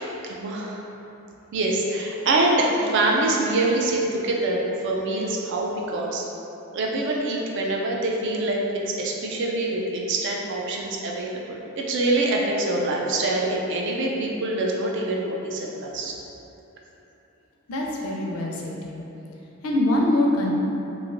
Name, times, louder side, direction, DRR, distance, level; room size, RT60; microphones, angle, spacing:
voice 1, 0.3-0.9 1.5-6.2 6.7-8.6 8.9-16.1, right 2 dB, 55° right, -1 dB, 0.4 m, -25 dB
voice 2, 17.7-19.1 19.6-20.5, left 1 dB, 75° left, -1 dB, 0.4 m, -24 dB
3.1 x 2.5 x 2.5 m, 2.9 s
head